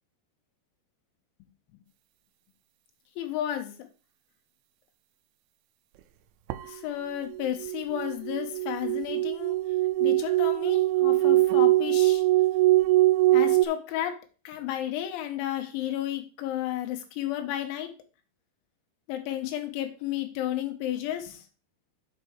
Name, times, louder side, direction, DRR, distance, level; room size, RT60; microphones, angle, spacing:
voice 1, 3.2-3.7 6.7-9.6 10.0-12.2 13.3-14.1 14.4-17.9 19.1-21.4, left 12 dB, 85° left, 5 dB, 3.4 m, -32 dB
sound 1, 6.5-6.6 7.3-13.7, right 17 dB, 85° right, 3.0 m, -22 dB
8.1 x 4.7 x 4.6 m, 0.35 s
omnidirectional pair, 5.3 m